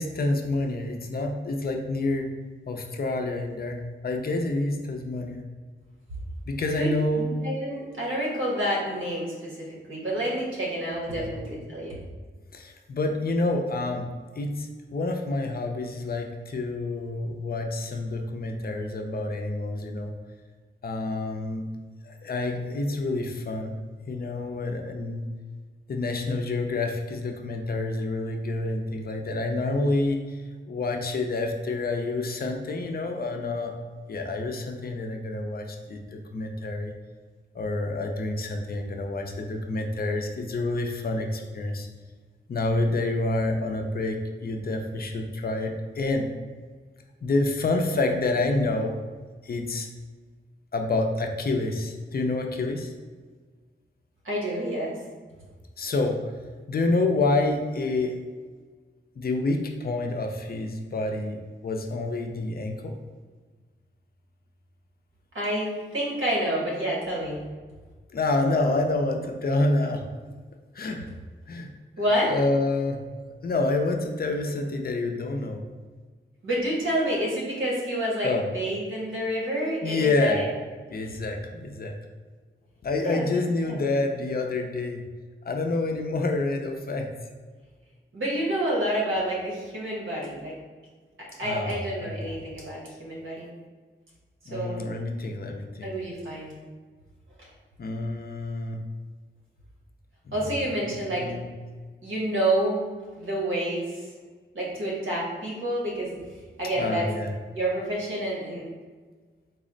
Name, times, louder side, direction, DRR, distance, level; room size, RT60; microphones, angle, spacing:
voice 1, 0.0-2.3 2.7-5.4 6.5-7.4 11.1-11.3 12.5-14.1 14.4-20.1 20.8-21.6 22.0-23.8 24.1-25.2 25.9-30.4 30.7-33.7 34.1-36.9 37.5-41.9 42.5-46.3 47.2-48.9 49.4-49.9 50.7-52.9 55.8-56.2 56.7-58.1 59.2-61.4 61.6-62.9 68.1-70.1 70.7-71.1 71.5-71.7 72.3-73.0 73.4-75.6 78.2-78.4 79.8-80.4 80.9-82.0 82.8-85.0 85.4-87.1 91.4-91.8 92.0-92.4 94.5-95.9 97.8-98.8 100.9-101.5 106.8-107.3, left 2 dB, 50° left, 3 dB, 0.4 m, -28 dB
voice 2, 6.7-12.0 54.2-55.0 65.3-67.4 72.0-72.3 76.4-80.5 83.0-83.3 83.6-83.8 88.1-90.6 91.2-93.5 94.4-94.8 95.8-96.5 97.4-97.5 100.3-101.3 102.0-102.9 103.1-104.1 104.5-106.2 106.6-107.1 107.5-108.7, right 1 dB, 80° right, -4 dB, 1.1 m, -28 dB
4.0 x 2.0 x 3.8 m, 1.4 s
wide cardioid pair, 90°, 20 cm